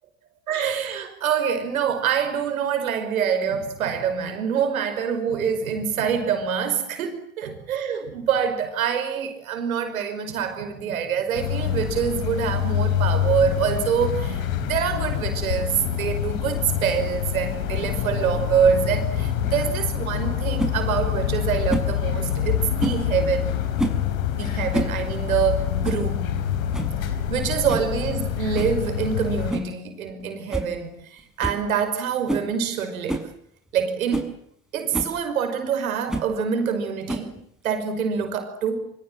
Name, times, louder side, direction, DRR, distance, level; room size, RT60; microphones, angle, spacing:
voice 1, 0.5-23.6 24.3-26.2 27.3-33.3 33.7-34.3 34.7-37.4 37.6-38.9, right 7 dB, 85° right, 8 dB, 5.6 m, -25 dB
sound 1, 11.3-29.5, left 9 dB, 80° left, 4.6 m, -26 dB
sound 2, 20.6-20.8 21.7-22.0 22.8-23.1 23.8-24.1 24.6-25.0 25.3-25.4 25.8-26.1 26.4-26.5 26.7-27.0 27.7-27.9 28.5-28.8 29.5-29.8 30.1-30.2 30.5-30.7 31.0-31.1 31.4-31.6 32.3-32.5 33.1-33.3 33.8-33.9 34.1-34.3 34.9-35.2 36.1-36.3 37.1-37.4, right 1 dB, ahead, 6.5 m, -28 dB
27.5 x 26.0 x 7.8 m, 0.72 s
hypercardioid pair, 60°, 41 cm